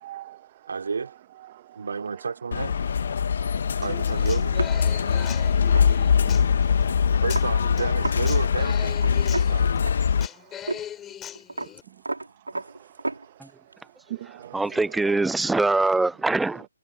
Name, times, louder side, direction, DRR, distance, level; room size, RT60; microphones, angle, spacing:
voice 1, 0.0-0.8 1.4-1.9 3.2-3.9 4.9-6.1 6.4-7.0 10.4-10.7 12.5-13.4 14.1-15.4, right 14 dB, 30° right, 2.2 m, -44 dB
voice 2, 0.7-1.1 1.7-2.8 3.8-4.6 7.2-9.8, right 5 dB, 55° right, 3.3 m, -31 dB
sound 1, 2.5-10.3, left 7 dB, 50° left, 1.9 m, -22 dB
Human voice / Acoustic guitar, 3.8-11.8, left 10 dB, 10° left, 5.5 m, -41 dB
sound 2, 4.5-8.2 8.5-8.6 8.9-10.3 10.7-10.8 11.1-13.7 14.1-15.5, right 2 dB, 75° right, 3.5 m, -35 dB
voice 3, 14.5-16.7, right 3 dB, 5° right, 0.5 m, -23 dB
figure-of-eight pair, 140°, 0 cm